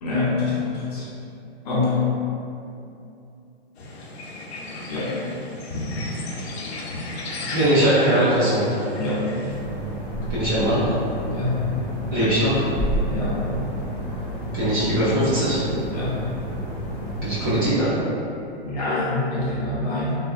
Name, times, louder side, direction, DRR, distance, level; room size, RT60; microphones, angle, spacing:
voice 1, 0.0-1.1 1.6-2.1 4.9-5.1 8.9-9.3 11.3-11.6 13.1-13.4 15.9-16.1 18.6-20.1, left 3 dB, 35° left, -7 dB, 0.6 m, -25 dB
sound 1, 3.8-9.6, left 2 dB, 80° left, 0.7 m, -34 dB
voice 2, 7.5-8.8 10.3-11.0 12.1-12.7 14.5-15.6 17.2-17.9, right 1 dB, 20° right, -11 dB, 0.5 m, -20 dB
sound 2, 9.5-17.7, right 1 dB, 10° left, 0.9 m, -30 dB
3.3 x 2.2 x 2.4 m, 2.7 s
hypercardioid pair, 160°, 32 cm